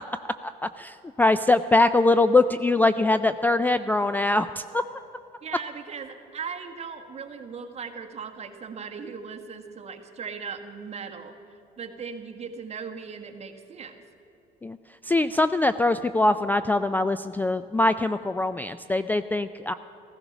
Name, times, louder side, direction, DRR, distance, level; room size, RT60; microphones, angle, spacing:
voice 1, 0.4-4.8 14.6-14.8 15.0-19.7, left 2 dB, 10° left, 12 dB, 0.3 m, -22 dB
voice 2, 5.4-11.3 11.8-14.0, right 6 dB, 40° right, 5 dB, 1.5 m, -38 dB
15.5 x 15.0 x 5.9 m, 2.9 s
cardioid pair, 110°, 17 cm